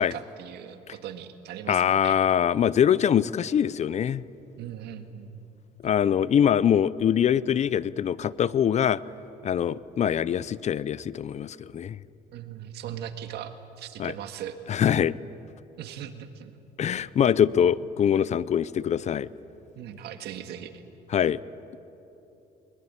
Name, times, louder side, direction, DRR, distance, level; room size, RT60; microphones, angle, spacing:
voice 1, 0.0-2.2 4.6-5.3 12.3-14.6 15.8-16.5 19.8-20.8, right 9 dB, 75° right, 8 dB, 1.8 m, -39 dB
voice 2, 1.7-4.2 5.8-9.0 9.4-12.0 14.0-14.1 14.7-15.1 16.8-19.3 21.1-21.4, left 9 dB, 40° left, 19 dB, 0.6 m, -23 dB
22.0 x 21.5 x 9.8 m, 3.0 s
cardioid pair, 110°, 17 cm